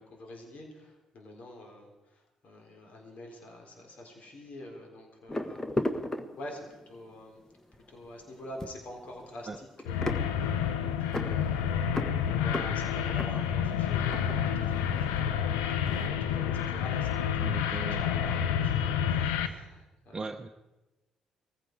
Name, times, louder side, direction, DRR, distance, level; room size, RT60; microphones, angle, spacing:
voice 1, 0.0-6.0 6.4-7.4 7.9-20.3, left 1 dB, 55° left, 1 dB, 4.0 m, -47 dB
sound 1, 5.3-6.9 7.5-7.8 8.0-15.2 15.5-16.1, left 1 dB, 15° left, 1.3 m, -36 dB
sound 2, 9.9-19.5, left 8 dB, 80° left, 0.8 m, -29 dB
voice 2, 17.4-18.0 20.1-20.5, right 3 dB, 25° right, 5 dB, 0.9 m, -38 dB
20.0 x 15.0 x 4.8 m, 1.1 s
hypercardioid pair, 45°, 3 cm